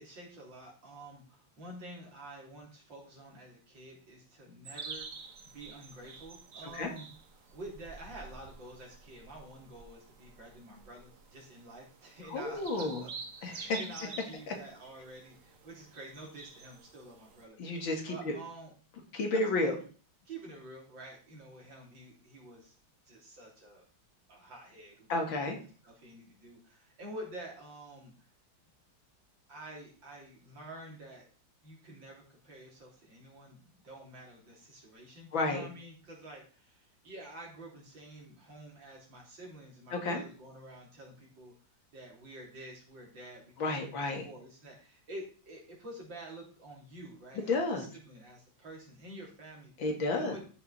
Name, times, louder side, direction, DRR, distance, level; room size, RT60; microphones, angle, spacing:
voice 1, 0.0-5.2 5.5-7.1 7.5-13.1 13.4-18.7 19.6-19.7 20.3-22.7 23.1-23.8 24.3-25.5 25.8-28.1 29.5-31.3 31.6-41.5 41.9-43.9 44.2-49.7 50.1-50.4, right 1 dB, 65° right, -2 dB, 4.0 m, -49 dB
sound 1, 4.6-17.4, right 5 dB, 45° right, 1.4 m, -49 dB
voice 2, 12.3-13.1 13.4-13.8 14.5-14.6 17.6-18.4 19.1-19.8 25.1-25.6 35.3-35.7 39.9-40.2 43.6-44.3 47.3-47.9 49.8-50.3, left 2 dB, 75° left, 3 dB, 2.7 m, -31 dB
13.5 x 5.7 x 4.2 m, 0.38 s
omnidirectional pair, 2.1 m